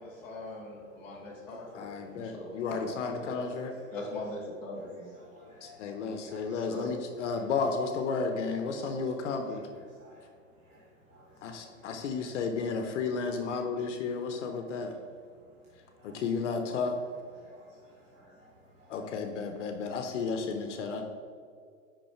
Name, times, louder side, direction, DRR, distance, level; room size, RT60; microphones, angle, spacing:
voice 1, 0.0-2.6 3.2-3.3 3.9-5.2 6.6-6.9, left 2 dB, 5° left, -8 dB, 0.4 m, -41 dB
voice 2, 1.7-3.7 5.6-9.7 11.4-14.9 16.0-17.0 18.9-21.0, left 4 dB, 60° left, 6 dB, 0.8 m, -33 dB
voice 3, 5.1-5.8 6.2-6.8 10.0-10.2 10.7-10.8 11.1-11.6 12.2-12.3 14.4-14.6 16.0-16.2 17.4-17.7 18.1-18.4 18.9-19.0, equal, 15° right, -7 dB, 0.8 m, -56 dB
5.5 x 5.4 x 4.3 m, 2.2 s
hypercardioid pair, 155°, 40 cm